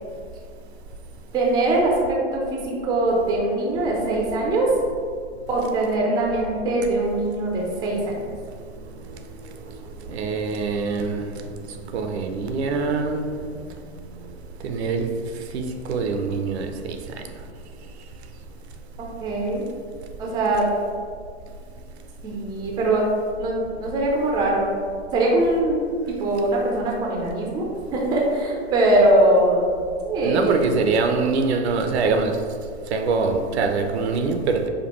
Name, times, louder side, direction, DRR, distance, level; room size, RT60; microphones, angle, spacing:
voice 1, 1.3-4.7 5.5-8.0 19.2-19.7 20.2-20.6 22.2-23.0 23.4-24.7 25.1-25.8 26.2-29.7 30.1-30.6, right 1 dB, 15° right, -2 dB, 0.4 m, -22 dB
voice 2, 10.1-11.3 11.9-13.3 14.6-15.1 15.5-17.0 30.2-32.4 32.9-34.7, right 4 dB, 70° right, 5 dB, 0.6 m, -24 dB
5.1 x 2.2 x 3.0 m, 2.1 s
hypercardioid pair, 130°, 34 cm